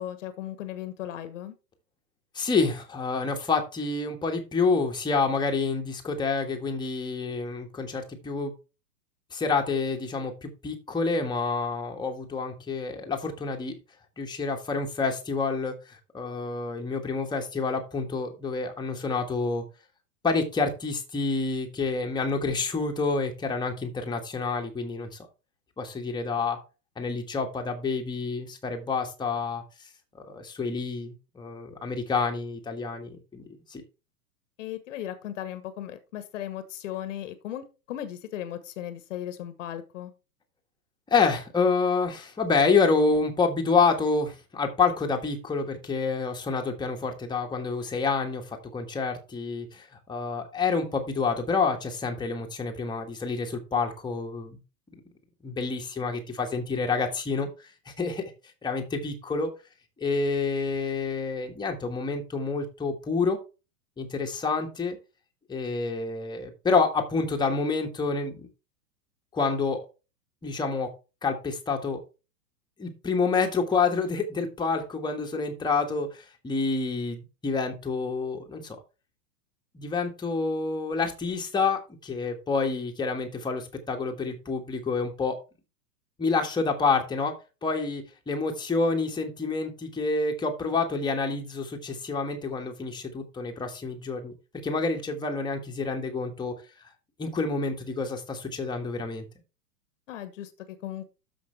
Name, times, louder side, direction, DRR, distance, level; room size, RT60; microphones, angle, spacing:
voice 1, 0.0-1.5 34.6-40.1 100.1-101.1, left 11 dB, 50° left, 11 dB, 1.4 m, -37 dB
voice 2, 2.3-8.5 9.3-13.7 14.2-19.6 20.2-25.2 25.8-26.6 27.0-29.6 30.2-33.8 41.1-54.6 55.4-57.5 57.9-58.2 58.6-59.5 60.0-63.4 64.0-65.0 65.5-68.5 69.3-69.8 70.4-70.9 71.2-72.0 72.8-78.8 79.7-85.4 86.2-87.3 87.6-94.3 94.6-96.5 97.2-99.2, left 4 dB, 10° left, 2 dB, 1.6 m, -28 dB
13.0 x 5.2 x 3.3 m, 0.31 s
figure-of-eight pair, 105°, 48 cm